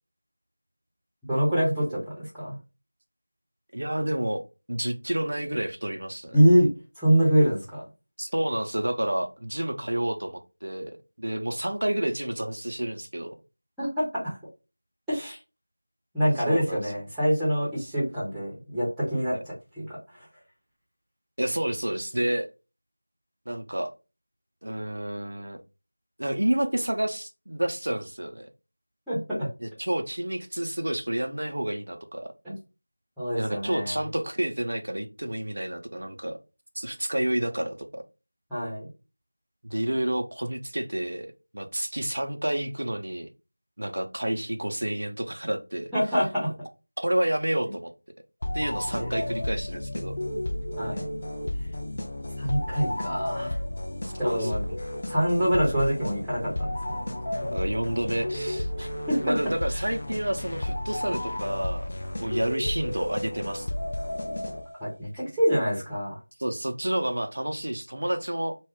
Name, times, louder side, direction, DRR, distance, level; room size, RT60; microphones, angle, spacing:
voice 1, 1.3-2.6 6.3-6.7 7.0-7.8 13.8-13.9 14.2-14.3 15.1-15.4 16.1-19.8 29.1-29.5 32.4-32.5 33.2-34.0 38.5-38.9 45.9-46.5 49.0-49.1 50.8-51.1 52.4-53.5 54.2-54.6 55.1-57.0 58.8-59.2 64.8-66.1, equal, ahead, 0.7 m, -25 dB
voice 2, 3.7-6.4 8.2-13.4 16.5-16.8 19.3-19.4 21.4-22.5 23.5-23.9 24.6-25.6 26.2-28.5 29.6-32.3 33.4-36.4 36.8-38.0 39.6-41.3 41.5-43.3 43.8-45.9 47.0-47.9 48.5-50.2 54.2-54.8 57.5-58.7 59.2-61.9 62.2-63.7 66.4-68.5, right 1 dB, 60° right, 0.5 m, -29 dB
sound 1, 48.4-64.9, left 1 dB, 35° left, 0.5 m, -32 dB
2.3 x 2.1 x 3.4 m
figure-of-eight pair, 175°, 0 cm